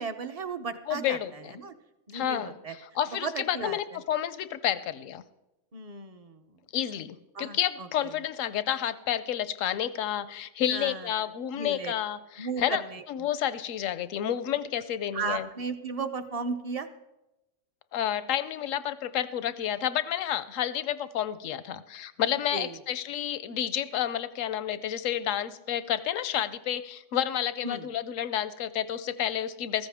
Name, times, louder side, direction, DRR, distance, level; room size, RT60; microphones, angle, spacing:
voice 1, 0.0-1.2 1.5-1.7 2.1-2.7 3.2-3.8 5.7-6.4 7.3-8.1 10.7-11.1 11.5-11.9 12.4-13.0 15.1-16.9 22.5-22.7 27.6-27.9, right 4 dB, 40° right, 10 dB, 0.6 m, -35 dB
voice 2, 0.9-1.6 2.1-5.2 6.7-12.8 13.1-15.5 17.9-29.9, left 10 dB, 85° left, 15 dB, 1.0 m, -30 dB
15.0 x 14.0 x 3.5 m, 0.95 s
omnidirectional pair, 1.3 m